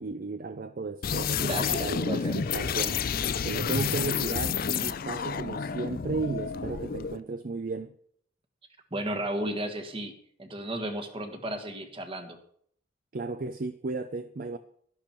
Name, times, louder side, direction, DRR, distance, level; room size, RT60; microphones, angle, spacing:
voice 1, 0.0-3.0 3.4-7.9 13.1-14.6, right 3 dB, 45° right, 0.5 m, -34 dB
sound 1, 1.0-7.2, left 7 dB, 45° left, 0.5 m, -30 dB
voice 2, 1.4-2.3 8.9-12.4, right 1 dB, 25° right, 1.5 m, -34 dB
12.0 x 11.5 x 4.5 m
head